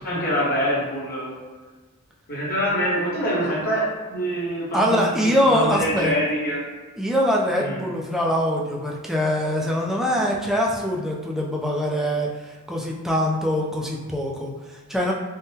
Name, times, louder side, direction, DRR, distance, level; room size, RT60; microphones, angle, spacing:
voice 1, 0.0-1.3 2.3-6.6 7.6-7.8, equal, 45° left, -7 dB, 1.0 m, -25 dB
voice 2, 4.7-6.1 7.0-15.1, equal, ahead, -2 dB, 0.3 m, -23 dB
3.6 x 2.1 x 2.7 m, 1.3 s
head